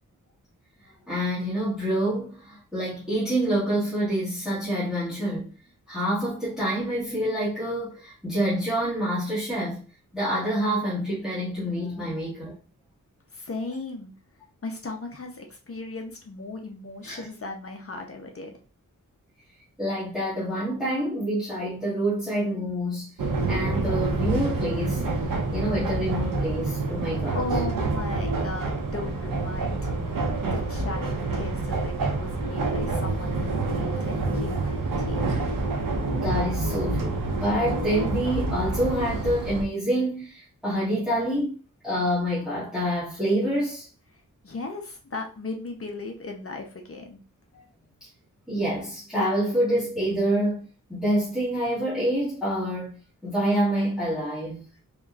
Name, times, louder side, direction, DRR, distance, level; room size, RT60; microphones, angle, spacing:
voice 1, 0.8-5.5 5.9-9.8 10.1-12.5 17.0-17.3 19.8-25.0 25.5-27.4 36.2-41.5 41.8-43.9 47.5-47.6 48.5-53.0 53.2-54.6, right 1 dB, ahead, 1.9 m, -27 dB
voice 2, 13.3-14.1 14.6-18.6 27.3-30.2 30.5-35.3 44.4-47.2, left 2 dB, 45° left, 0.7 m, -37 dB
sound 1, 23.2-39.6, right 2 dB, 80° right, 0.8 m, -27 dB
4.1 x 3.1 x 2.4 m
wide cardioid pair, 115°, 33 cm